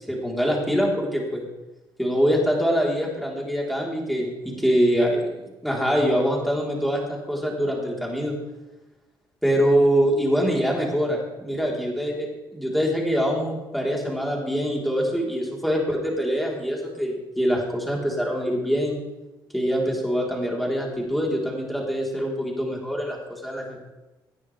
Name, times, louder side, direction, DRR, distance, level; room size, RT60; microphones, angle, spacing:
voice 1, 0.1-1.4 2.0-8.3 9.4-19.0 19.5-23.8, equal, ahead, -2 dB, 3.9 m, -24 dB
18.0 x 9.6 x 3.5 m, 1.1 s
cardioid pair, 85°, 9 cm